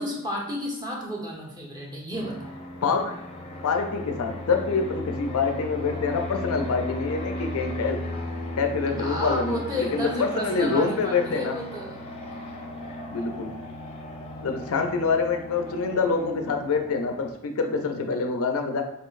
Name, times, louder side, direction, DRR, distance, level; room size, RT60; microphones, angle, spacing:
voice 1, 0.0-2.5 9.0-12.0, left 1 dB, 20° right, -3 dB, 1.0 m, -32 dB
Fixed-wing aircraft airplane, 2.1-17.3, left 1 dB, 25° left, 0.7 m, -36 dB
voice 2, 2.8-3.2 3.6-8.0 8.6-11.5 13.1-13.5 14.4-18.8, left 4 dB, 65° left, 5 dB, 0.5 m, -26 dB
3.8 x 3.7 x 2.5 m, 0.90 s
head